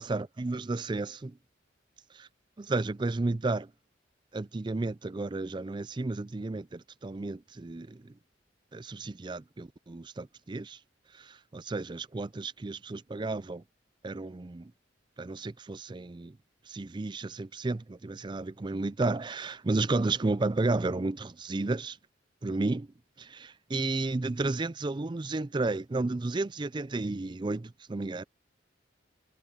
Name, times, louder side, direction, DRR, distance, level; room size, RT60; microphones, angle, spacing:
voice 1, 0.0-1.3 2.6-3.7 4.3-8.1 8.7-10.8 11.2-13.6 14.0-14.7 15.2-16.3 16.7-22.0 22.4-22.9 23.2-28.2, right 3 dB, 25° right, 0.4 m, -32 dB
head